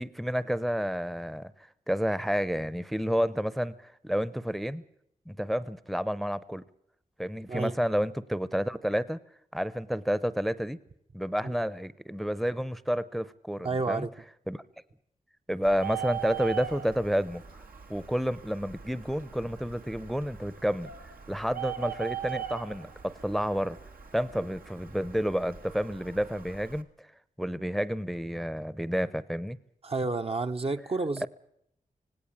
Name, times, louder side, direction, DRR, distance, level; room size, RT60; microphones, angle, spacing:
voice 1, 0.0-4.8 5.3-6.6 7.2-9.2 9.5-10.8 11.1-14.1 14.5-14.6 15.5-17.4 17.9-20.9 21.3-23.8 24.1-26.9 27.4-29.6 31.2-31.3, equal, ahead, 0.7 m, -30 dB
voice 2, 13.6-14.1 29.8-31.3, right 3 dB, 40° right, 0.8 m, -30 dB
Bird, 15.6-26.8, right 10 dB, 80° right, 1.5 m, -41 dB
18.5 x 17.5 x 8.6 m
wide cardioid pair, 70°, 15 cm